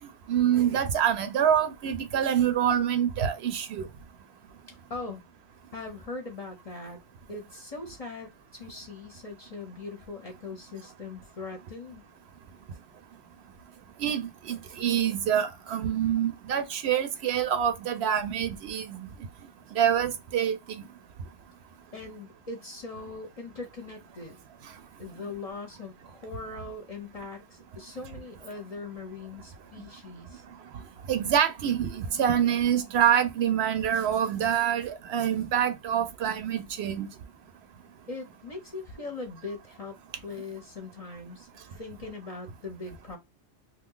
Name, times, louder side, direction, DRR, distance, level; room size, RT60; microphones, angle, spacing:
voice 1, 0.3-3.8 14.0-19.0 19.7-20.8 31.1-37.1, right 9 dB, 70° right, 0.8 m, -26 dB
voice 2, 4.7-5.2 5.7-7.0 7.3-12.1 21.9-24.4 25.0-30.4 38.1-43.2, left 3 dB, 40° left, 0.6 m, -41 dB
2.7 x 2.4 x 3.7 m
omnidirectional pair, 1.1 m